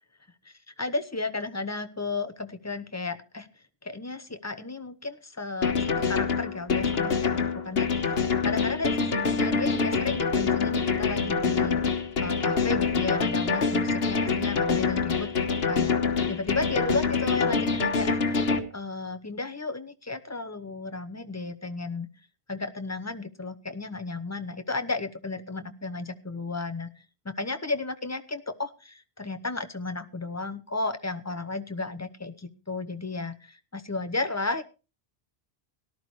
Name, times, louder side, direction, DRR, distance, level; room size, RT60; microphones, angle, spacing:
voice 1, 0.4-3.5 3.8-15.9 16.3-22.1 22.5-26.9 27.2-34.6, left 3 dB, 15° left, 9 dB, 0.8 m, -34 dB
sound 1, 5.6-18.6, left 5 dB, 70° left, 1.4 m, -25 dB
18.0 x 12.0 x 3.1 m, 0.32 s
omnidirectional pair, 1.1 m